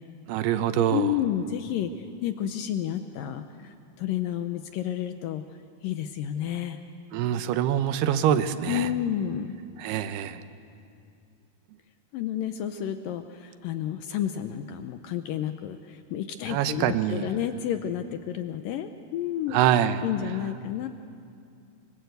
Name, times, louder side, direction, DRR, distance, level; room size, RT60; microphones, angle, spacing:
voice 1, 0.3-1.1 7.1-8.9 9.8-10.4 16.5-17.3 19.5-20.0, right 10 dB, 75° right, 10 dB, 2.8 m, -25 dB
voice 2, 0.9-1.9 2.2-5.4 5.8-6.8 8.7-9.5 12.1-19.6 20.0-20.9, left 10 dB, 80° left, 8 dB, 2.0 m, -30 dB
25.0 x 24.5 x 8.1 m, 2.5 s
omnidirectional pair, 5.0 m